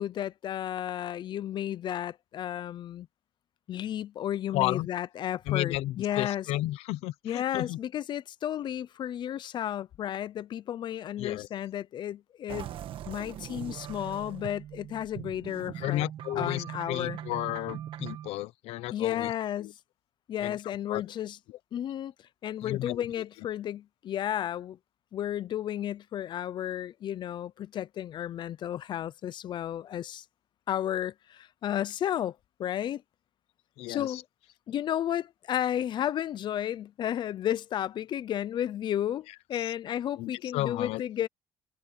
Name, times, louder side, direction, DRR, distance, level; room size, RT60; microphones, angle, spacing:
voice 1, 0.0-3.1 3.7-6.5 7.2-12.7 13.1-16.1 16.3-17.2 18.9-19.7 20.3-21.4 21.7-22.1 22.4-24.8 25.1-30.2 30.7-33.0 33.9-34.2 34.7-41.3, left 11 dB, 50° left, 0.7 m, -33 dB
voice 2, 4.5-4.9 5.5-7.8 11.2-11.5 15.8-19.3 19.6-19.7 20.4-20.6 20.9-21.0 22.6-23.1 33.8-34.2 39.6-39.7 40.2-41.0, left 16 dB, 85° left, 1.0 m, -33 dB
sound 1, 12.5-18.3, right 11 dB, 60° right, 1.7 m, -41 dB
cardioid pair, 130°, 10 cm